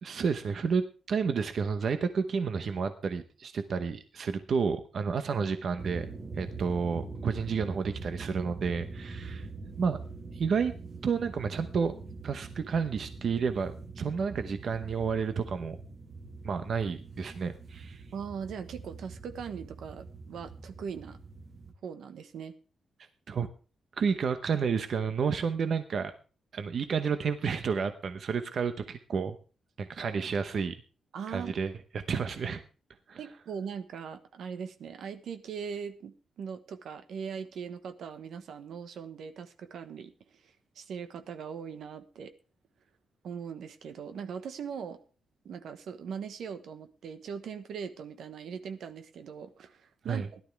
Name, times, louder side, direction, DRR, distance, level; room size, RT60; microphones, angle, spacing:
voice 1, 0.0-6.1 6.4-9.5 9.8-10.0 10.3-10.7 11.0-11.9 12.2-15.8 16.4-18.0 23.3-23.5 24.0-26.1 26.5-29.4 29.8-30.8 31.3-32.6 33.1-33.2 50.1-50.3, right 5 dB, 55° right, 9 dB, 0.9 m, -30 dB
sound 1, 5.8-21.7, right 3 dB, 35° right, 1.5 m, -43 dB
voice 2, 18.1-21.2 21.8-22.5 31.1-31.5 33.2-42.3 43.2-45.0 45.4-50.4, right 6 dB, 80° right, 9 dB, 1.2 m, -40 dB
17.0 x 12.0 x 3.5 m, 0.37 s
wide cardioid pair, 145°, 0 cm